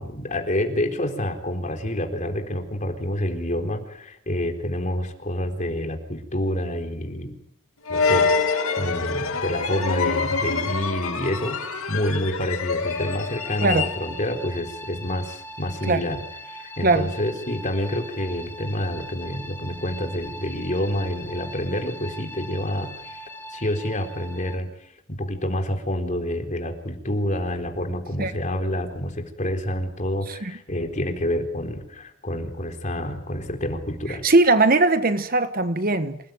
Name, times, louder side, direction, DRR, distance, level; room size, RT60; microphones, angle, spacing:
voice 1, 0.0-7.4 7.9-23.2 23.5-24.7 25.1-34.2, left 1 dB, 35° left, 4.0 m, -28 dB
sound 1, 7.9-14.3, left 4 dB, 80° left, 2.6 m, -26 dB
sound 2, 12.8-24.6, equal, 10° left, 2.6 m, -40 dB
voice 2, 34.2-36.2, right 2 dB, 40° right, 1.2 m, -19 dB
27.5 x 19.5 x 9.4 m
head